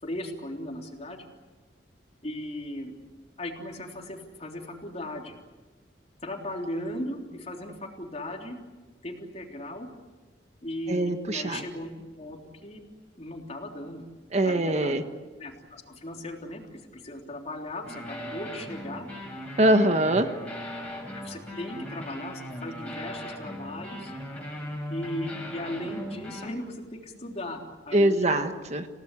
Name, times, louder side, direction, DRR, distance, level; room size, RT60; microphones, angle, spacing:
voice 1, 0.0-1.3 2.2-2.9 3.4-5.3 6.2-8.6 9.0-9.9 10.6-12.8 13.2-14.0 14.4-15.0 15.4-19.1 21.1-24.1 24.9-28.4, left 1 dB, 40° left, 2 dB, 3.4 m, -37 dB
voice 2, 10.9-11.6 14.3-15.0 19.6-20.3 27.9-28.9, right 1 dB, 40° right, 7 dB, 1.4 m, -23 dB
sound 1, 17.8-26.5, left 1 dB, 10° left, 7.2 m, -38 dB
28.5 x 17.5 x 8.4 m, 1.3 s
head